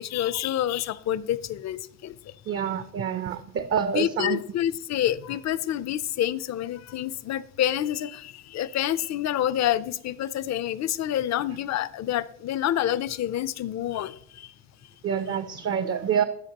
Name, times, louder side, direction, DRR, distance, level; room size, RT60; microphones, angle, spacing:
voice 1, 0.0-2.3 3.9-14.5, left 11 dB, 55° left, 17 dB, 0.5 m, -28 dB
voice 2, 2.5-4.4 15.0-16.2, right 8 dB, 45° right, 10 dB, 0.5 m, -27 dB
13.0 x 5.1 x 2.9 m, 0.69 s
cardioid pair, 110°, 32 cm